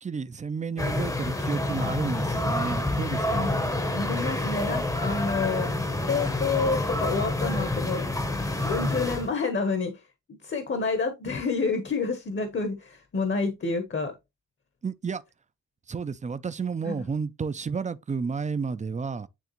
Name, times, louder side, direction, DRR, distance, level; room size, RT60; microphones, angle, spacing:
voice 1, 0.0-3.5 14.8-15.2 15.9-19.3, right 5 dB, 25° right, 0.4 m, -31 dB
sound 1, 0.8-9.3, left 2 dB, 10° left, 0.7 m, -28 dB
voice 2, 3.3-5.7 6.0-8.0 8.7-10.0 10.3-14.1 16.8-16.9, left 4 dB, 35° left, 0.9 m, -29 dB
9.2 x 3.4 x 3.0 m
wide cardioid pair, 145°, 31 cm